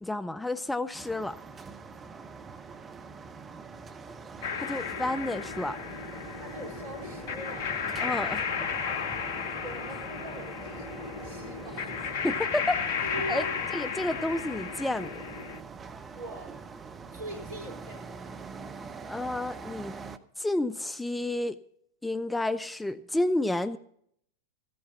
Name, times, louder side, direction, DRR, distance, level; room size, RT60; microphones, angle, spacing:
voice 1, 0.0-1.4 4.6-5.8 8.0-8.5 12.2-12.8 13.3-13.4 13.7-15.2 19.1-19.9 20.4-21.6 22.0-23.8, left 1 dB, 5° left, 13 dB, 0.4 m, -30 dB
sound 1, 0.9-20.2, right 5 dB, 20° right, 0.8 m, -44 dB
sound 2, 4.4-15.6, left 7 dB, 55° left, 0.8 m, -34 dB
voice 2, 6.4-7.7 9.6-11.8 13.0-13.5 16.1-16.5 17.1-18.4, right 1 dB, 60° right, 3 dB, 4.2 m, -41 dB
15.0 x 8.5 x 5.8 m, 0.69 s
figure-of-eight pair, 90°, 0 cm